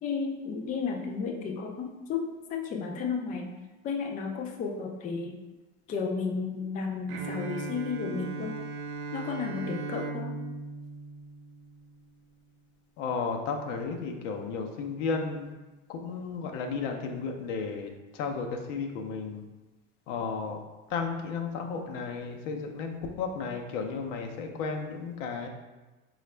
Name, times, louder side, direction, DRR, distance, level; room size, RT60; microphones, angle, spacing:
voice 1, 0.0-3.5 3.8-5.4 5.9-8.6 9.1-10.4, left 5 dB, 25° left, 2 dB, 0.3 m, -33 dB
Bowed string instrument, 7.1-12.0, right 3 dB, 45° right, 0.4 m, -38 dB
voice 2, 13.0-15.5 15.9-19.4 20.1-20.6 20.9-25.5, left 5 dB, 80° left, 3 dB, 0.7 m, -33 dB
4.0 x 2.4 x 3.2 m, 1.1 s
supercardioid pair, 115°, 37 cm